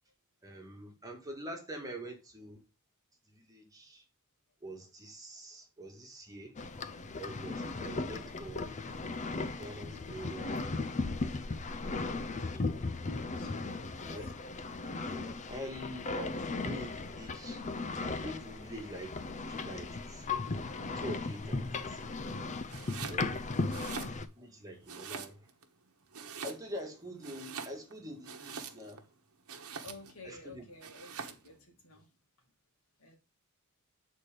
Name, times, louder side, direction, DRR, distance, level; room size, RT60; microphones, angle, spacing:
voice 1, 0.4-2.6 3.3-4.0 4.6-6.5 7.2-8.7 9.4-10.7 11.8-12.7 14.1-14.3 15.1-17.6 18.0-19.2 19.5-20.5 21.0-22.2 23.1-23.5 24.4-25.5 26.4-29.1 30.2-30.7, equal, 15° right, 1.8 m, -45 dB
sound 1, 6.6-24.3, left 3 dB, 35° left, 0.5 m, -37 dB
voice 2, 13.1-14.0 23.4-23.8 29.8-32.1 33.0-33.2, left 3 dB, 70° left, 2.3 m, -53 dB
Domestic sounds home sounds, 22.7-23.2 23.6-24.5 24.9-25.6 26.1-26.9 27.2-29.0 29.5-30.2 30.8-31.5, right 6 dB, 70° right, 1.2 m, -44 dB
8.3 x 4.2 x 5.1 m
head